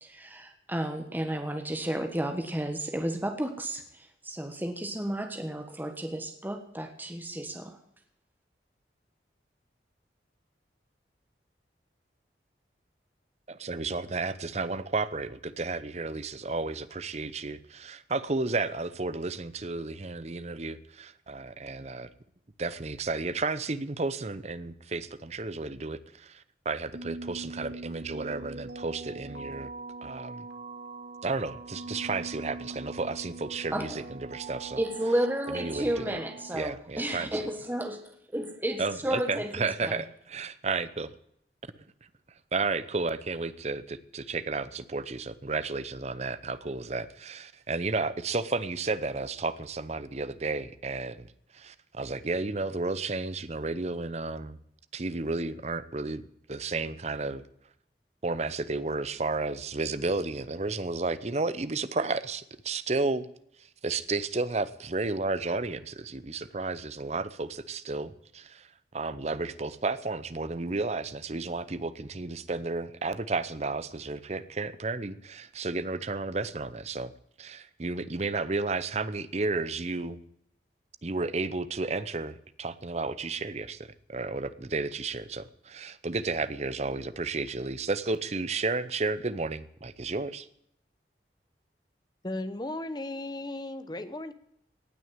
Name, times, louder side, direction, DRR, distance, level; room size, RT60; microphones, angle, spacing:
voice 1, 0.0-7.8 33.7-34.0 34.8-38.0 38.3-40.0, right 1 dB, 10° right, 5 dB, 1.4 m, -32 dB
voice 2, 13.5-22.1 22.6-29.7 30.0-30.5 31.2-34.8 35.5-36.2 36.5-37.3 38.8-41.1 42.5-51.3 51.5-54.6 54.9-56.2 56.5-57.4 58.2-63.3 63.8-68.7 68.9-77.1 77.4-80.2 81.0-90.5, right 3 dB, 40° right, 15 dB, 0.8 m, -32 dB
sound 1, 26.9-36.6, right 3 dB, 75° right, 1.9 m, -42 dB
voice 3, 92.2-94.3, left 2 dB, 25° left, 12 dB, 0.9 m, -35 dB
18.0 x 6.4 x 9.0 m, 0.72 s
head